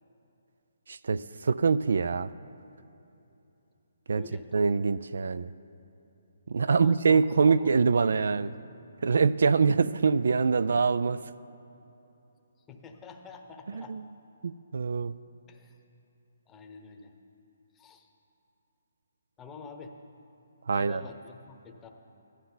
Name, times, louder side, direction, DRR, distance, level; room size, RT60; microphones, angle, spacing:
voice 1, 0.9-2.3 4.1-4.2 4.5-5.5 6.5-8.5 9.0-11.2 13.7-14.0 14.4-15.1 20.7-21.0, right 5 dB, 70° right, 15 dB, 0.3 m, -24 dB
voice 2, 4.1-4.5 6.7-7.7 8.3-8.5 12.7-13.9 15.5-15.7 16.5-17.1 17.7-18.1 19.4-19.9 20.7-21.9, left 4 dB, 15° left, 3 dB, 0.9 m, -47 dB
14.5 x 11.5 x 3.9 m, 2.9 s
hypercardioid pair, 155°, 0 cm